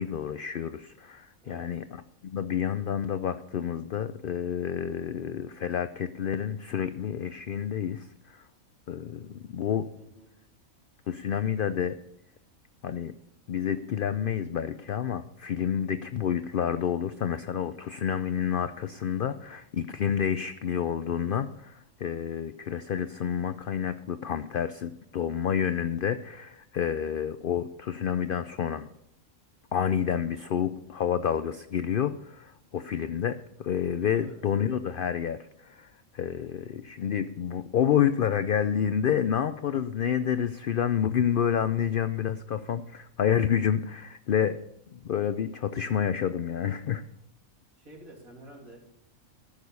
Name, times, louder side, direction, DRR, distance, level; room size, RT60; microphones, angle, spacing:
voice 1, 0.0-1.8 2.2-8.1 8.3-8.4 8.9-9.9 11.1-12.0 12.8-13.1 13.5-28.9 29.7-35.9 36.1-44.6 44.9-47.0, left 8 dB, 65° left, 11 dB, 0.5 m, -29 dB
voice 2, 1.4-1.8 10.0-10.3 34.1-34.4 47.8-48.9, right 1 dB, 85° right, -3 dB, 3.6 m, -49 dB
14.0 x 6.6 x 5.4 m, 0.73 s
omnidirectional pair, 1.4 m